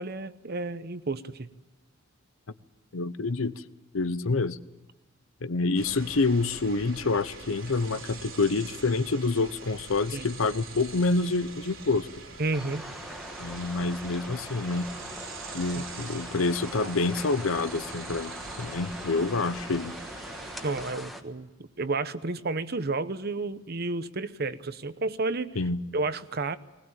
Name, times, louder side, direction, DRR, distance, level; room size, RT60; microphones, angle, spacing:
voice 1, 0.0-1.5 10.1-10.3 12.4-12.8 15.7-15.8 20.6-21.5 21.8-25.6 25.9-26.6, right 3 dB, 50° right, 13 dB, 0.9 m, -31 dB
voice 2, 2.9-3.6 3.9-4.6 5.4-12.1 13.4-14.9 15.5-18.3 18.6-19.9 25.6-25.8, left 3 dB, 80° left, 15 dB, 0.8 m, -27 dB
sound 1, 5.7-20.9, right 4 dB, 80° right, 4.4 m, -44 dB
sound 2, 12.5-21.2, equal, ahead, 1.4 m, -42 dB
20.0 x 20.0 x 8.9 m, 1.1 s
head